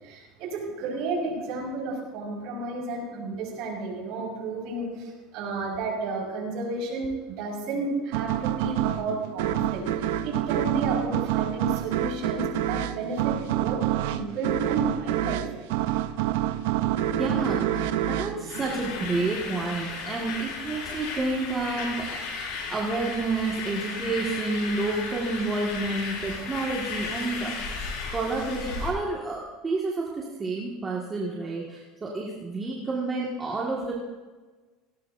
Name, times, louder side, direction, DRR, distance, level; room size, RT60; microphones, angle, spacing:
voice 1, 0.0-15.6, right 3 dB, 60° right, -2 dB, 5.1 m, -32 dB
sound 1, 8.1-19.4, right 12 dB, 80° right, 0.6 m, -27 dB
voice 2, 17.2-21.9 22.3-33.9, right 3 dB, 20° right, -4 dB, 1.8 m, -30 dB
sound 2, 18.5-28.9, left 4 dB, 70° left, 5.5 m, -35 dB
18.0 x 18.0 x 2.7 m, 1.3 s
supercardioid pair, 145°, 0 cm